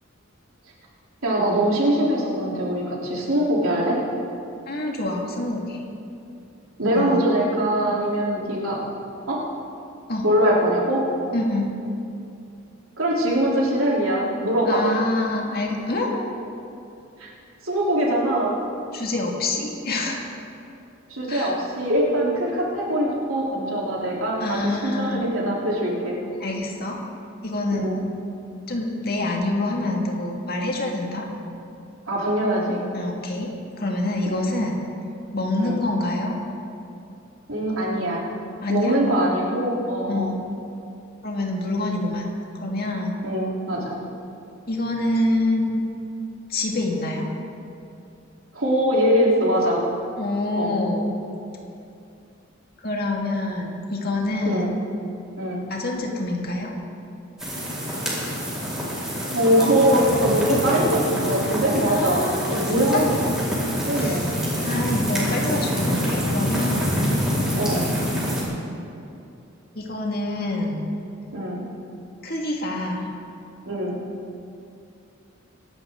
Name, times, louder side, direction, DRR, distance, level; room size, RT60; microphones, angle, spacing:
voice 1, 1.2-4.0 6.8-8.8 9.3-9.4 10.2-11.0 13.0-15.0 17.2-17.3 17.6-18.6 21.1-26.2 27.7-28.0 32.1-32.8 34.3-34.5 35.6-35.8 37.5-38.2 38.7-40.4 43.2-44.0 48.5-49.8 50.6-50.8 54.4-54.7 55.4-55.6 58.5-58.6 59.3-63.3 63.9-64.3 67.5-67.9 71.3-71.6 73.7-74.0, right 1 dB, 85° right, -4 dB, 3.4 m, -22 dB
voice 2, 4.7-5.8 6.9-7.3 10.1-10.2 11.3-11.7 14.7-16.1 18.9-20.3 21.3-21.5 24.4-25.2 26.4-27.0 27.4-27.9 28.7-31.3 32.9-34.8 35.3-36.4 38.6-39.0 40.1-40.4 41.2-43.2 44.7-45.8 46.5-47.3 50.2-51.2 52.8-54.8 55.7-56.7 60.5-60.6 61.9-63.0 64.0-64.3 64.6-67.1 69.7-70.9 72.2-73.1, left 2 dB, 50° left, 0 dB, 2.0 m, -26 dB
sound 1, 57.4-68.4, equal, 5° right, 4.3 m, -26 dB
24.0 x 11.5 x 3.8 m, 2.6 s
head